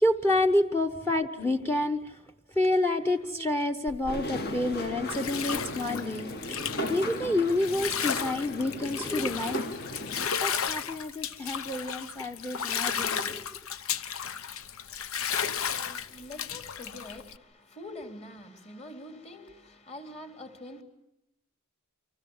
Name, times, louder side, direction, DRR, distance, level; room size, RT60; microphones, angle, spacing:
voice 1, 0.0-2.2 2.5-9.6 10.4-13.5, left 1 dB, 10° left, 8 dB, 1.0 m, -28 dB
Bathtub (filling or washing), 3.9-17.4, left 7 dB, 70° left, 1.0 m, -34 dB
sound 1, 4.1-10.3, left 1 dB, 50° left, 2.0 m, -37 dB
voice 2, 15.7-20.8, left 1 dB, 30° left, 5 dB, 3.7 m, -45 dB
29.5 x 25.0 x 7.3 m, 0.86 s
head